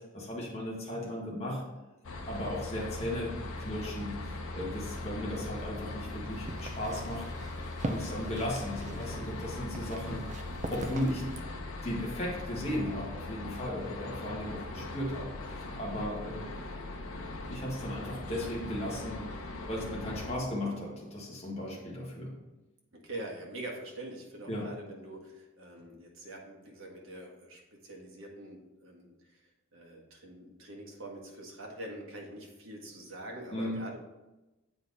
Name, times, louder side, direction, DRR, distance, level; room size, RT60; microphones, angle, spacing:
voice 1, 0.0-1.6 2.2-7.3 7.8-10.3 10.7-11.3 11.8-16.5 17.5-19.3 19.7-22.3 24.5-24.7 33.5-33.8, left 1 dB, 30° left, -4 dB, 1.8 m, -36 dB
sound 1, 2.0-20.4, left 2 dB, 75° left, 0.9 m, -40 dB
sound 2, 6.3-11.4, right 2 dB, 35° right, 0.6 m, -42 dB
voice 2, 22.9-29.4 29.7-34.0, right 1 dB, 65° right, -1 dB, 1.6 m, -44 dB
7.9 x 4.9 x 4.0 m, 1.0 s
head